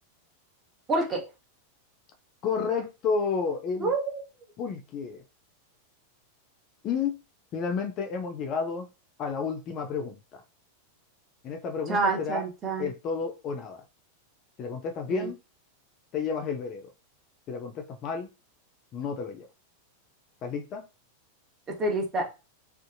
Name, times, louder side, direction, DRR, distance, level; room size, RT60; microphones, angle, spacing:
voice 1, 0.9-1.2 3.8-4.2 11.9-12.9 15.1-15.3 21.8-22.3, right 3 dB, 20° right, 0 dB, 1.1 m, -27 dB
voice 2, 2.4-3.9 4.6-5.2 6.8-7.2 7.5-8.9 9.2-10.4 11.4-12.4 12.8-13.8 14.6-15.4 16.1-16.9 17.5-18.3 18.9-19.5 20.4-20.8, left 5 dB, 35° left, 4 dB, 0.5 m, -31 dB
2.6 x 2.4 x 2.6 m, 0.29 s
figure-of-eight pair, 90°, 0 cm